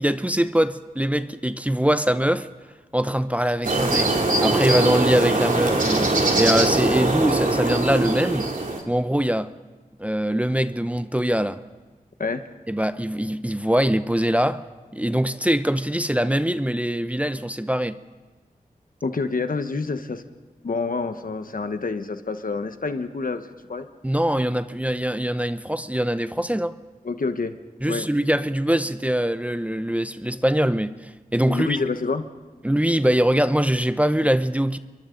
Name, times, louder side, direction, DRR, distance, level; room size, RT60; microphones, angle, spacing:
voice 1, 0.0-2.5 2.9-4.1 4.4-8.5 8.9-9.5 10.0-11.6 12.7-14.6 14.9-18.0 24.0-26.8 27.8-31.7 32.6-34.8, equal, 10° right, 0.7 m, -23 dB
sound 1, 3.6-8.8, right 2 dB, 60° right, 2.8 m, -22 dB
voice 2, 19.0-20.2 20.6-23.9 27.0-27.5 27.9-28.1 31.5-32.2, left 4 dB, 65° left, 1.2 m, -27 dB
29.5 x 23.0 x 3.9 m
wide cardioid pair, 65°, 15 cm